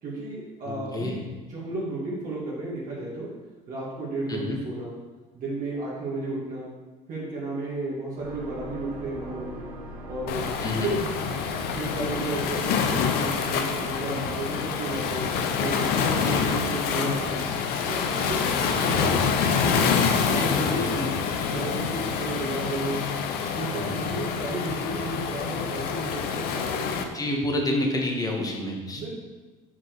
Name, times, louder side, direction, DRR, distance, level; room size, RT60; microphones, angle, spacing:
voice 1, 0.0-1.2 1.5-3.3 3.7-4.9 5.3-6.7 7.1-9.7 10.1-10.5 10.8-11.1 11.7-15.3 15.6-17.5 17.9-20.8 21.5-23.0 23.5-27.1 28.9-29.1, right 2 dB, 50° right, -7 dB, 2.2 m, -33 dB
voice 2, 0.6-1.2 4.3-4.6 10.6-10.9 16.2-16.5 18.6-18.7 20.4-21.1 23.8-24.0 27.1-29.1, left 1 dB, 20° left, 0 dB, 1.6 m, -29 dB
sound 1, 8.2-16.4, right 1 dB, 90° right, 1.2 m, -41 dB
Waves surf, 10.3-27.0, left 6 dB, 60° left, 0.8 m, -26 dB
6.0 x 4.5 x 4.7 m, 1.2 s
hypercardioid pair, 70°, 18 cm